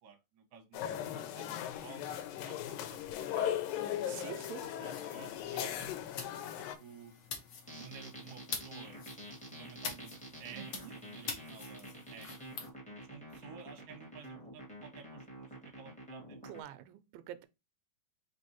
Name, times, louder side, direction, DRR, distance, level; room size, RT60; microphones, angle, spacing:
voice 1, 0.0-3.6 4.1-5.9 6.2-7.1 7.7-9.0 9.5-10.1 10.4-12.3 12.9-16.4, right 6 dB, 60° right, 1.3 m, -53 dB
sound 1, 0.7-6.8, left 10 dB, 90° left, 2.3 m, -38 dB
voice 2, 4.1-4.7 10.5-10.9 16.5-17.5, right 12 dB, 85° right, 2.3 m, -46 dB
sound 2, 4.8-12.7, left 6 dB, 70° left, 1.3 m, -46 dB
sound 3, 7.7-16.6, right 1 dB, 10° left, 0.4 m, -48 dB
5.3 x 3.2 x 2.8 m
omnidirectional pair, 4.0 m